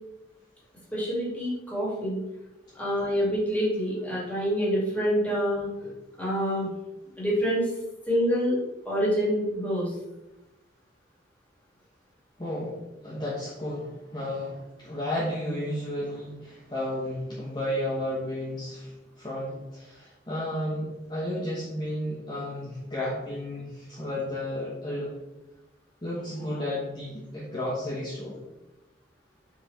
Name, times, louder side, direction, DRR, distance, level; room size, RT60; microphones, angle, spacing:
voice 1, 0.9-2.2 2.8-5.7 6.2-6.7 7.2-7.7 8.1-8.6 8.9-9.9, equal, 10° left, -7 dB, 2.4 m, -26 dB
voice 2, 12.4-25.1 26.0-28.4, left 1 dB, 25° left, -7 dB, 1.2 m, -33 dB
5.8 x 5.0 x 4.2 m, 0.99 s
head